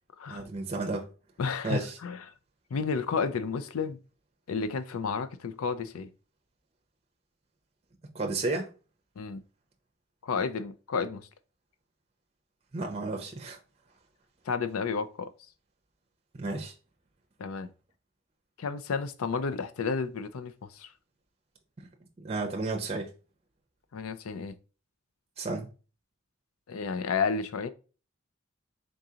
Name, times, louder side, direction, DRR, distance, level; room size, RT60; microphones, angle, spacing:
voice 1, 0.3-1.1 1.6-2.0 8.1-8.7 12.7-13.6 16.3-16.7 22.2-23.1 25.4-25.7, right 3 dB, 25° right, 0.6 m, -32 dB
voice 2, 1.4-2.2 2.7-4.0 4.5-6.1 9.2-9.4 10.2-11.3 14.5-15.3 17.4-17.7 18.6-20.9 23.9-24.5 26.7-27.7, left 5 dB, 80° left, 0.4 m, -31 dB
3.8 x 3.7 x 2.8 m
head